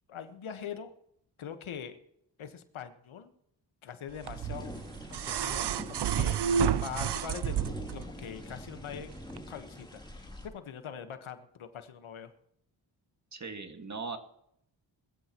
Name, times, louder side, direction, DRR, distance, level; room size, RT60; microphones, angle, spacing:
voice 1, 0.1-0.9 1.4-2.0 2.4-3.3 3.8-4.7 5.1-6.4 6.7-12.3, left 8 dB, 80° left, 9 dB, 1.4 m, -43 dB
sound 1, 4.2-10.5, left 1 dB, 10° left, 2.8 m, -45 dB
sound 2, 4.3-8.0 9.3-9.4, right 8 dB, 60° right, 0.7 m, -30 dB
voice 2, 13.3-14.2, right 4 dB, 35° right, 5 dB, 2.0 m, -39 dB
20.5 x 13.5 x 3.1 m, 0.74 s
cardioid pair, 75°, 47 cm